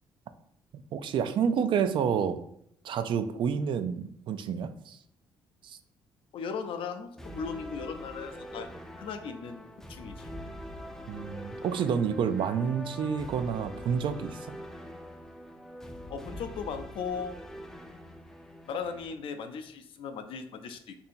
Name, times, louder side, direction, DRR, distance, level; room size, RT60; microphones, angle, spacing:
voice 1, 0.9-2.4 2.8-5.0 5.6-5.8 11.1-14.6, right 7 dB, 60° right, 10 dB, 0.3 m, -29 dB
voice 2, 6.3-8.7 9.0-10.3 16.1-17.4 18.7-21.0, left 6 dB, 65° left, 8 dB, 0.5 m, -37 dB
sound 1, 7.2-19.1, equal, 5° left, 0.4 m, -44 dB
2.7 x 2.7 x 4.2 m, 0.71 s
cardioid pair, 105°, 10 cm